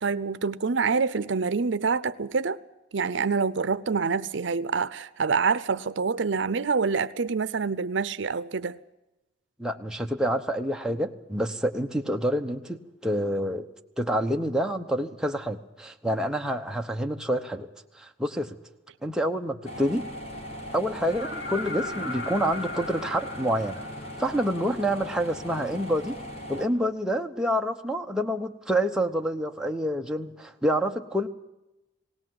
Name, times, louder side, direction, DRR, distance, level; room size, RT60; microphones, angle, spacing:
voice 1, 0.0-2.6 2.9-8.8, right 5 dB, 75° right, 0.6 m, -26 dB
voice 2, 9.6-13.7 14.0-17.7 18.0-18.6 19.0-20.1 20.7-23.8 24.2-26.2 26.5-31.3, equal, 5° right, 0.9 m, -27 dB
sound 1, 19.6-26.7, equal, 30° left, 1.9 m, -39 dB
sound 2, 21.1-24.8 26.7-26.8, left 2 dB, 70° left, 3.0 m, -37 dB
19.5 x 18.0 x 7.8 m
head